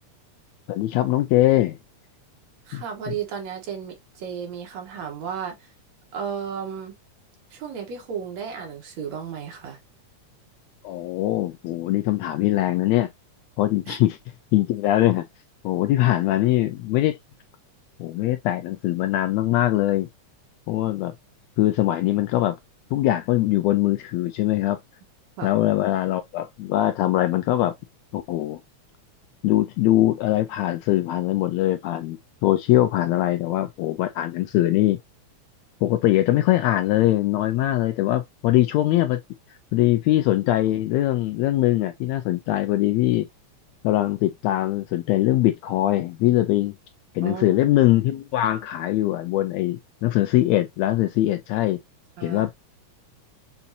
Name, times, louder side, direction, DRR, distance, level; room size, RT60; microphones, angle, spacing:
voice 1, 0.7-1.8 2.7-2.8 3.1-3.2 10.8-13.1 13.6-14.2 14.5-15.2 15.6-17.2 18.0-20.1 20.7-21.1 21.6-22.6 22.9-24.8 25.4-27.7 28.1-28.6 29.4-35.0 35.8-39.2 39.7-43.3 43.8-46.7 47.1-51.8 52.2-52.5, left 14 dB, 80° left, 1.6 m, -22 dB
voice 2, 2.7-5.7 6.1-6.9 7.5-9.8 13.9-14.0 25.4-25.5 47.2-47.6 52.2-52.5, right 7 dB, 70° right, 2.4 m, -33 dB
7.0 x 2.6 x 2.7 m
omnidirectional pair, 3.4 m